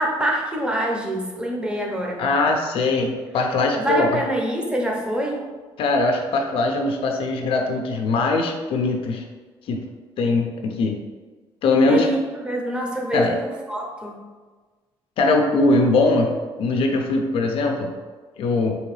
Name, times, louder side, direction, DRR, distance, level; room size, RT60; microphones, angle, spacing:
voice 1, 0.0-2.3 3.8-5.4 11.9-14.2, right 1 dB, 10° right, -1 dB, 0.7 m, -25 dB
voice 2, 2.2-4.1 5.8-9.2 9.7-9.8 10.2-11.0 11.6-12.1 13.1-13.3 15.2-16.3 16.6-17.9 18.4-18.7, left 3 dB, 70° left, 2 dB, 0.5 m, -21 dB
3.7 x 2.9 x 3.1 m, 1.4 s
cardioid pair, 90°, 10 cm